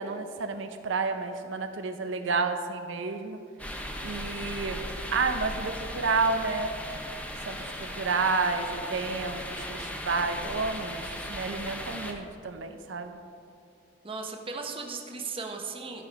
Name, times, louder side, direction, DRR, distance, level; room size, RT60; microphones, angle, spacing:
voice 1, 0.0-3.4 4.0-4.8 5.1-6.7 7.5-11.0 11.3-13.2, right 4 dB, 85° right, 7 dB, 0.6 m, -30 dB
sound 1, 3.6-12.1, equal, 5° left, 0.8 m, -37 dB
voice 2, 14.0-16.0, right 4 dB, 30° right, 3 dB, 0.9 m, -36 dB
13.0 x 5.9 x 5.2 m, 2.4 s
head